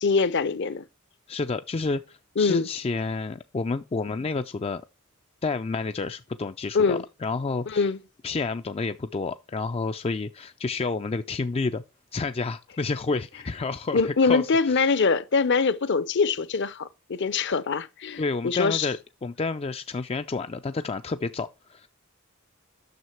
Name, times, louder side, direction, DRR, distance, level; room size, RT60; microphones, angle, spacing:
voice 1, 0.0-0.8 2.4-2.7 6.7-7.0 7.7-8.0 13.9-18.9, left 4 dB, 55° left, 0.7 m, -23 dB
voice 2, 1.3-4.8 5.4-7.9 8.2-11.8 12.1-14.9 18.2-21.9, left 4 dB, 25° left, 0.4 m, -30 dB
9.4 x 6.5 x 4.4 m
head